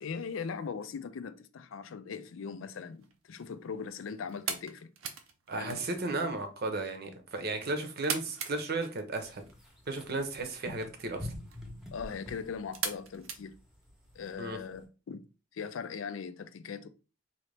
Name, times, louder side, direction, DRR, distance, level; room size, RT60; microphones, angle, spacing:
voice 1, 0.0-4.9 5.6-5.8 11.9-13.5 14.1-15.2 15.5-16.9, left 6 dB, 75° left, 0.4 m, -40 dB
sound 1, 2.9-14.3, right 6 dB, 90° right, 0.6 m, -43 dB
voice 2, 5.5-9.4 9.9-11.3 14.4-14.6, right 2 dB, 55° right, 0.8 m, -34 dB
sound 2, 9.2-14.8, left 1 dB, ahead, 0.8 m, -47 dB
3.9 x 2.8 x 3.3 m
head